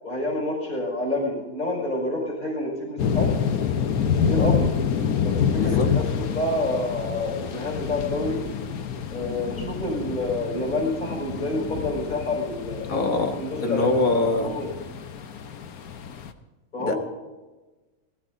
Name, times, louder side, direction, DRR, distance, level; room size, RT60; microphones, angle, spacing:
voice 1, 0.0-3.3 4.1-4.7 5.2-8.4 9.1-12.9 13.4-13.9 14.1-14.7 16.7-17.0, left 2 dB, 35° left, -3 dB, 5.4 m, -28 dB
sound 1, 3.0-16.3, left 7 dB, 90° left, 1.4 m, -27 dB
voice 2, 5.6-5.9 12.9-14.5 16.8-16.9, left 2 dB, 70° left, 4 dB, 2.1 m, -24 dB
19.5 x 14.0 x 3.8 m, 1.2 s
omnidirectional pair, 1.5 m